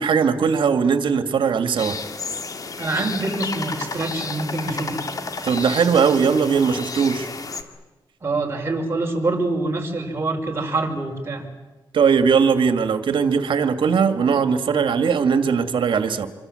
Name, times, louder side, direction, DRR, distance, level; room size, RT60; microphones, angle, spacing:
voice 1, 0.0-2.0 5.4-7.3 11.9-16.3, right 6 dB, 70° right, 9 dB, 2.3 m, -19 dB
sound 1, 1.8-7.6, left 4 dB, 45° left, 2.2 m, -31 dB
voice 2, 2.8-5.0 8.2-11.5, right 2 dB, 30° right, 2 dB, 5.4 m, -25 dB
27.5 x 24.0 x 8.0 m, 1.1 s
cardioid pair, 100°, 9 cm